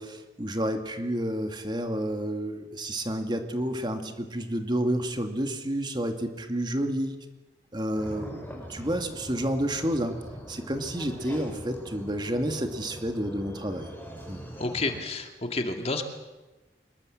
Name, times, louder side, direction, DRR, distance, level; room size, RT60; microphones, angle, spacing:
voice 1, 0.0-7.2 7.7-10.1 10.5-13.9 14.3-14.4, right 1 dB, 25° right, 6 dB, 2.3 m, -30 dB
sound 1, 8.0-15.0, equal, 10° left, 5.2 m, -42 dB
voice 2, 14.6-16.0, left 3 dB, 35° left, 5 dB, 2.3 m, -30 dB
25.5 x 21.5 x 7.6 m, 1.1 s
head